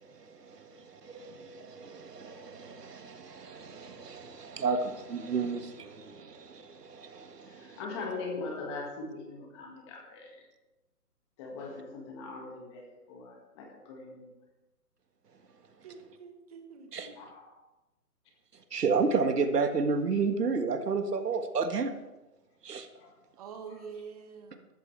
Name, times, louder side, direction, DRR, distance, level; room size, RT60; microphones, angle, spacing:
voice 1, 0.0-7.8 11.6-11.8 16.9-17.1 18.7-21.9 22.6-22.9, right 4 dB, 80° right, 7 dB, 1.8 m, -32 dB
voice 2, 7.6-10.3 11.4-14.3 17.2-17.5 23.0-23.1 23.6-23.8, left 3 dB, 20° left, 0 dB, 1.9 m, -41 dB
voice 3, 15.8-17.1 23.4-24.7, right 6 dB, 25° right, 4 dB, 1.3 m, -46 dB
14.5 x 13.0 x 3.3 m, 1.0 s
hypercardioid pair, 165°, 47 cm